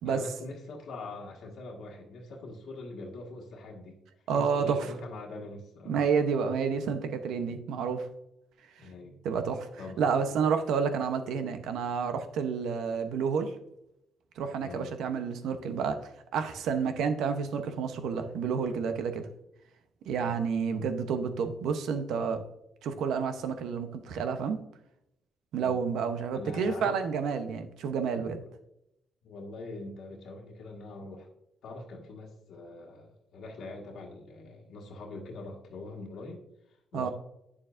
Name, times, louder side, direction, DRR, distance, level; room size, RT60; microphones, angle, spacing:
voice 1, 0.0-4.0 4.3-6.0 8.8-9.2 9.8-10.3 14.6-14.9 20.2-20.4 25.6-25.8 26.3-27.0 28.4-28.5 29.2-31.3 31.6-36.4 36.9-37.1, left 2 dB, 75° left, -1 dB, 1.5 m, -43 dB
voice 2, 4.3-4.9 5.9-8.1 9.2-9.7 10.0-13.5 14.4-16.0 16.3-19.2 20.1-22.4 22.8-24.6 25.5-28.4 36.9-37.1, right 6 dB, 80° right, 8 dB, 0.8 m, -29 dB
8.8 x 6.9 x 2.6 m, 0.82 s
cardioid pair, 90°, 0 cm